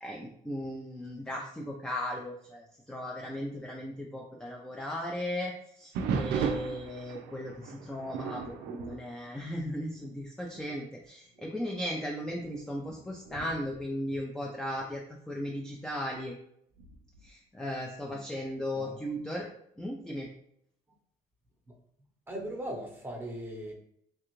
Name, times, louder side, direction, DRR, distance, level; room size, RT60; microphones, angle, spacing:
voice 1, 0.0-16.3 17.2-19.5 19.8-20.3, left 1 dB, 5° left, -1 dB, 0.4 m, -37 dB
sound 1, 5.9-10.1 10.4-10.8 11.4-11.5 12.2-14.9 16.8-17.3, right 6 dB, 90° right, 0.4 m, -37 dB
voice 2, 18.0-19.0 22.3-23.7, right 1 dB, 15° right, -1 dB, 0.9 m, -40 dB
3.2 x 2.4 x 3.0 m, 0.70 s
cardioid pair, 110°, 17 cm